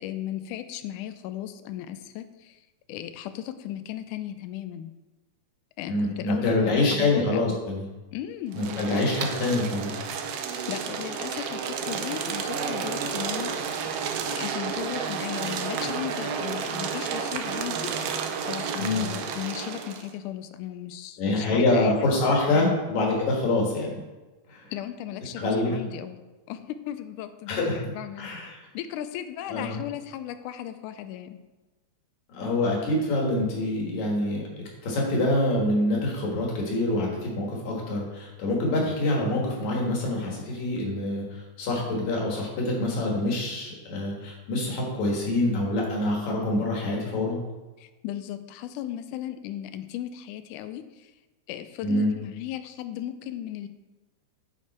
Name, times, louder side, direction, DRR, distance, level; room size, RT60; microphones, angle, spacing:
voice 1, 0.0-2.6 2.9-4.9 5.8-7.6 8.1-9.0 10.5-13.5 14.4-17.9 18.5-22.7 24.7-26.2 26.5-28.3 28.7-31.4 47.8-51.1 51.5-53.7, left 12 dB, 85° left, 10 dB, 2.1 m, -36 dB
voice 2, 5.9-7.8 8.5-9.9 18.8-19.0 21.2-24.0 24.5-24.7 25.4-25.8 27.5-27.8 28.2-28.6 29.5-29.8 32.3-34.4 34.8-47.4 51.8-52.1, left 2 dB, 70° left, -2 dB, 3.1 m, -26 dB
sound 1, 8.5-20.1, right 6 dB, 85° right, 1.3 m, -31 dB
9.6 x 5.2 x 4.3 m, 1.2 s
omnidirectional pair, 3.5 m